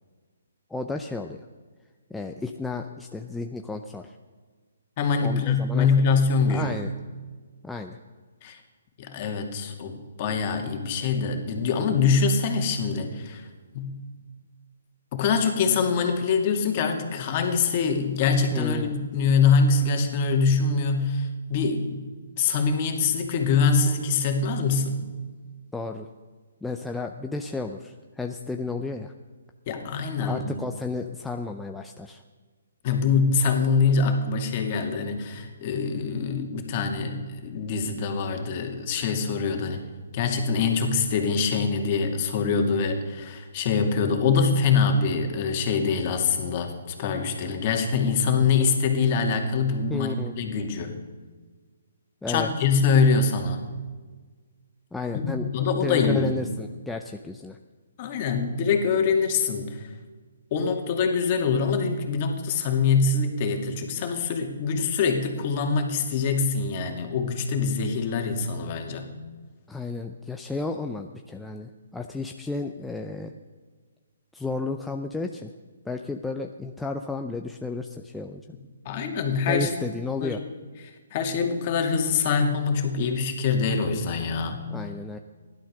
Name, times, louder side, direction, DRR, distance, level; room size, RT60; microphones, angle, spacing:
voice 1, 0.7-1.4 2.1-4.2 5.2-5.9 6.5-6.9 7.6-8.0 18.5-19.0 25.7-26.1 26.6-29.1 30.2-32.2 49.9-50.3 52.2-52.5 54.9-55.5 55.8-57.6 69.7-73.3 74.3-75.5 75.8-78.4 79.4-80.4 84.7-85.2, left 3 dB, 5° left, 3 dB, 0.6 m, -32 dB
voice 2, 5.0-6.8 8.4-8.6 9.0-13.5 13.7-13.9 15.1-22.0 22.4-25.0 29.7-30.6 32.8-39.8 40.1-51.0 52.3-53.7 55.2-56.3 58.0-59.9 60.5-69.1 78.8-79.7 80.2-80.4 81.1-84.6, left 5 dB, 35° left, 4 dB, 2.3 m, -24 dB
16.0 x 11.5 x 6.6 m, 1.4 s
hypercardioid pair, 155°, 0 cm